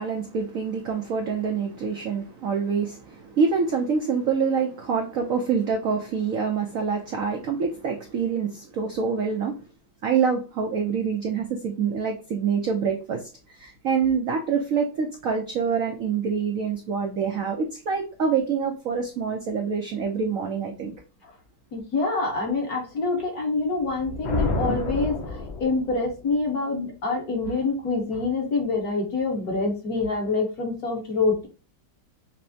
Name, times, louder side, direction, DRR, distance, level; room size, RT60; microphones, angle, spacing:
voice 1, 0.0-9.7 10.0-21.0, right 6 dB, 70° right, 2 dB, 0.7 m, -26 dB
voice 2, 21.7-31.5, left 3 dB, 55° left, 0 dB, 1.5 m, -26 dB
Thunder, 23.8-26.2, left 3 dB, 85° left, 1.7 m, -29 dB
5.7 x 2.0 x 2.7 m, 0.34 s
omnidirectional pair, 2.1 m